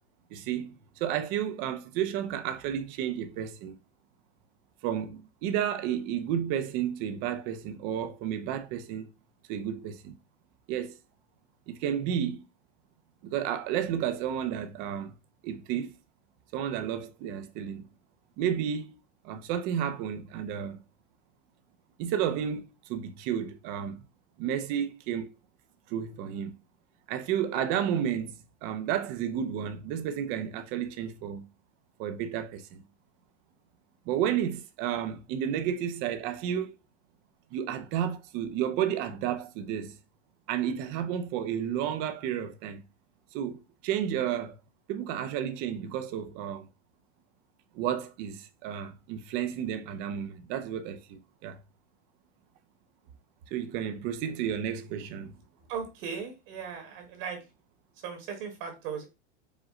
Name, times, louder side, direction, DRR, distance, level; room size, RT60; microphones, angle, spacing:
voice 1, 0.3-3.7 4.8-9.1 9.5-10.1 10.7-10.9 11.7-12.4 13.2-15.1 15.4-15.9 16.5-17.8 18.4-18.9 19.2-20.8 22.0-24.0 24.4-25.3 25.9-26.5 27.1-28.3 28.6-31.5 32.0-32.8 34.1-36.7 37.5-40.0 40.5-42.8 43.3-44.6 44.9-46.7 47.7-51.6 53.5-55.3, right 9 dB, 30° right, 0.4 m, -32 dB
voice 2, 55.7-57.4 58.0-59.0, right 6 dB, 50° right, 1.3 m, -37 dB
4.9 x 2.0 x 3.6 m
supercardioid pair, 155°, 35 cm